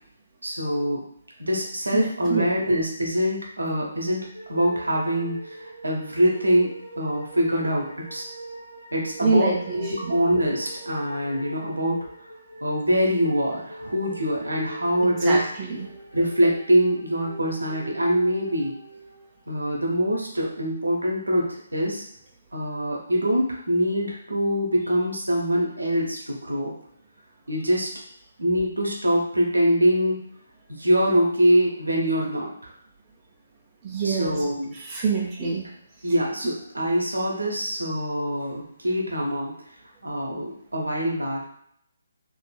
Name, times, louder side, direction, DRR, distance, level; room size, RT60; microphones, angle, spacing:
voice 1, 0.4-1.0 1.4-4.2 4.5-8.2 8.9-12.1 12.6-15.4 16.1-18.7 19.5-22.0 22.5-26.7 27.5-27.9 28.4-30.2 30.7-32.7 34.0-34.7 36.0-39.5 40.0-41.5, equal, 75° right, -2 dB, 0.8 m, -24 dB
voice 2, 1.9-2.8 9.2-10.2 15.0-15.9 33.8-34.4 34.7-35.6 36.4-36.5, right 4 dB, 20° right, -4 dB, 0.6 m, -26 dB
sound 1, 4.3-19.5, right 1 dB, 60° left, 1.3 m, -41 dB
3.5 x 2.5 x 2.3 m, 0.70 s
figure-of-eight pair, 140°, 0 cm